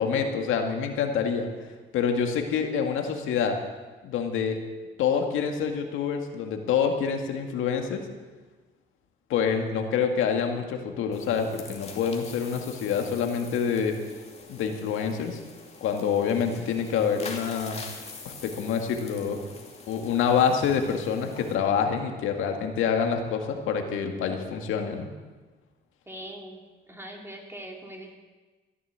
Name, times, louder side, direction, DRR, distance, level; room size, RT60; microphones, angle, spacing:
voice 1, 0.0-1.5 1.9-3.6 4.0-4.6 5.0-8.0 9.3-14.0 14.5-15.4 15.8-17.8 18.2-19.4 19.9-25.1, left 7 dB, 85° left, 4 dB, 2.0 m, -26 dB
sound 1, 11.1-21.5, left 4 dB, 30° left, 2.6 m, -45 dB
voice 2, 26.1-26.6 26.9-28.2, right 1 dB, 10° right, 0 dB, 3.4 m, -41 dB
14.5 x 11.0 x 8.2 m, 1.3 s
cardioid pair, 90°, 20 cm